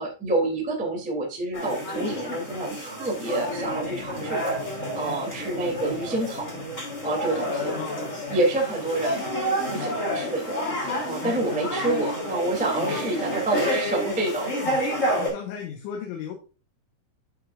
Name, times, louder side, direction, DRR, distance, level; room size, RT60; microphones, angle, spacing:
voice 1, 0.0-4.5 4.9-6.5 7.0-7.7 8.3-14.7, right 2 dB, 5° right, -2 dB, 0.8 m, -28 dB
sound 1, 1.5-15.3, equal, 20° left, 2.3 m, -29 dB
voice 2, 7.7-8.4 9.8-10.0 11.2-11.6 12.8-13.0 14.6-14.8 15.2-16.3, left 8 dB, 75° left, 2 dB, 3.4 m, -37 dB
11.0 x 6.5 x 2.5 m, 0.34 s
omnidirectional pair, 5.8 m